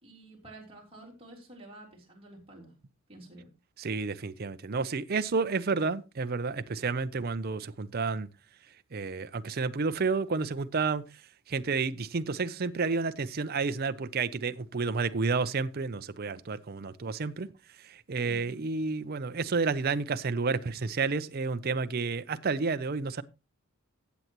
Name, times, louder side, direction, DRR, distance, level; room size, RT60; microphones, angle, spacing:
voice 1, 0.0-2.7 3.1-3.5 18.2-18.6, right 2 dB, 25° right, 3.6 m, -50 dB
voice 2, 3.8-8.3 8.9-11.0 11.5-17.5 17.9-23.2, right 4 dB, 45° right, 0.5 m, -30 dB
15.0 x 7.9 x 3.0 m
head